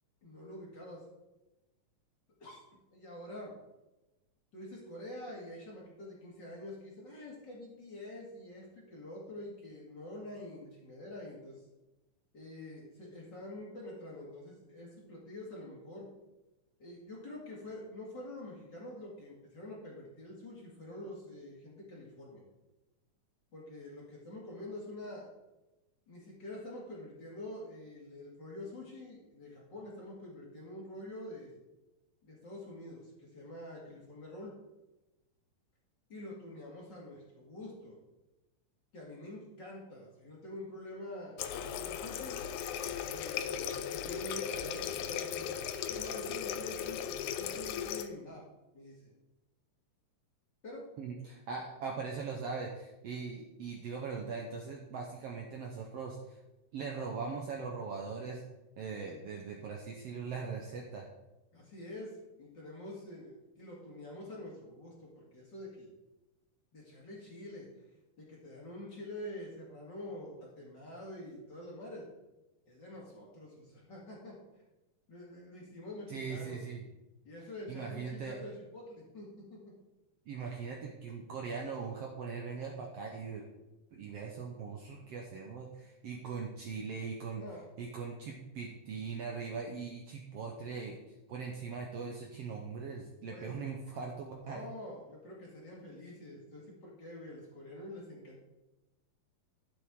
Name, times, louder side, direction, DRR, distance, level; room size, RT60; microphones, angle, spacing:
voice 1, 0.2-1.0 2.4-2.6 2.9-3.5 4.5-11.6 12.3-16.1 16.8-22.4 23.5-25.3 26.1-31.6 32.2-34.5 36.1-38.0 38.9-41.4 41.8-42.4 43.1-48.4 48.7-49.1 50.6-50.9 61.5-65.9 66.7-67.7 68.2-72.1 72.7-74.4 75.1-76.6 77.2-79.7 87.3-87.7 93.2-93.6 94.4-98.4, left 1 dB, 35° left, -4 dB, 2.5 m, -46 dB
Water tap faucet, 41.4-48.1, left 8 dB, 80° left, 2.0 m, -37 dB
voice 2, 51.0-56.4 56.7-58.4 58.8-61.0 76.1-76.8 77.7-78.4 80.3-83.4 83.9-87.4 87.8-91.0 91.3-94.6, right 5 dB, 65° right, 0 dB, 1.6 m, -40 dB
12.0 x 7.6 x 3.7 m, 1.0 s
omnidirectional pair, 3.7 m